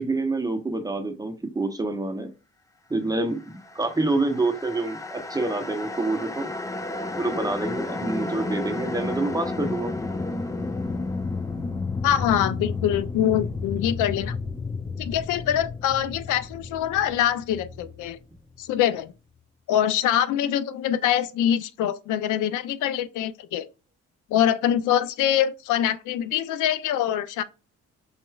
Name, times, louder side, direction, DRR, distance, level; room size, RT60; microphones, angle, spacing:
voice 1, 0.0-2.3 2.9-6.5 7.1-9.9, right 2 dB, 10° right, 0.8 m, -27 dB
sound 1, 3.6-18.8, left 3 dB, 10° left, 0.4 m, -32 dB
voice 2, 12.0-14.4 15.0-18.2 18.6-19.1 19.7-23.7 24.3-27.4, left 10 dB, 80° left, 0.5 m, -24 dB
5.6 x 3.0 x 2.3 m
cardioid pair, 90°, 30 cm